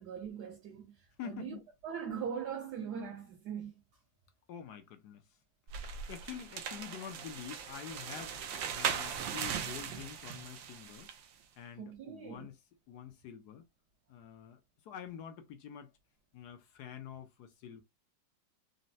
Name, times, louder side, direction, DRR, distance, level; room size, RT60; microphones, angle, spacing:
voice 1, 0.0-3.8 11.8-12.5, right 7 dB, 65° right, 1.3 m, -41 dB
voice 2, 1.2-1.6 4.5-5.2 5.8-8.4 8.7-11.1 11.6-12.5 12.9-13.7 14.1-15.9 16.3-17.8, left 9 dB, 70° left, 1.0 m, -47 dB
sound 1, 5.7-11.2, right 7 dB, 85° right, 1.3 m, -39 dB
4.0 x 2.1 x 2.6 m
omnidirectional pair, 2.0 m